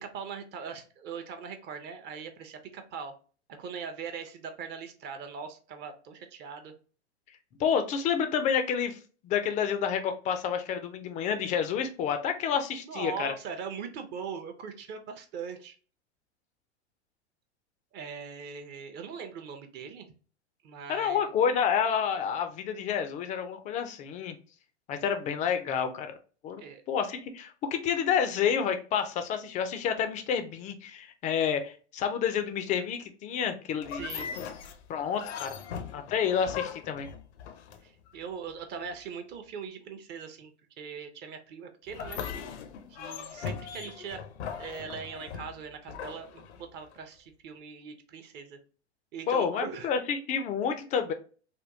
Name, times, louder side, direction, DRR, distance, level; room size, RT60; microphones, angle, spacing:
voice 1, 0.0-3.1 3.6-6.7 12.8-15.8 17.9-20.1 20.6-21.3 26.6-26.8 33.9-34.3 37.8-40.5 40.8-42.2 42.9-44.2 44.6-48.6 49.1-49.9, right 6 dB, 30° right, 7 dB, 0.6 m, -40 dB
voice 2, 7.6-9.0 9.2-13.3 20.9-24.4 24.9-26.2 26.4-26.6 26.9-34.0 34.9-35.6 35.9-37.1 49.3-51.1, left 7 dB, 20° left, 8 dB, 0.3 m, -29 dB
sound 1, 33.8-38.1 41.9-47.0, left 7 dB, 70° left, 0.6 m, -39 dB
3.5 x 2.2 x 2.6 m, 0.38 s
hypercardioid pair, 105°, 35 cm